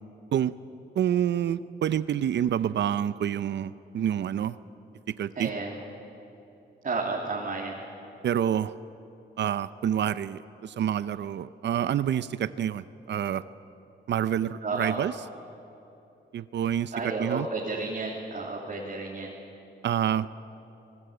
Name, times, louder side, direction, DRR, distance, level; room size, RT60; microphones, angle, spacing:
voice 1, 1.0-4.6 5.2-5.5 8.2-8.7 9.4-13.4 14.1-15.1 16.3-17.5 19.8-20.3, right 10 dB, 75° right, 15 dB, 0.6 m, -27 dB
voice 2, 5.3-5.8 6.8-7.8 14.6-15.0 16.9-19.3, right 3 dB, 45° right, -3 dB, 3.1 m, -32 dB
25.5 x 19.5 x 8.0 m, 2.9 s
cardioid pair, 100°, 19 cm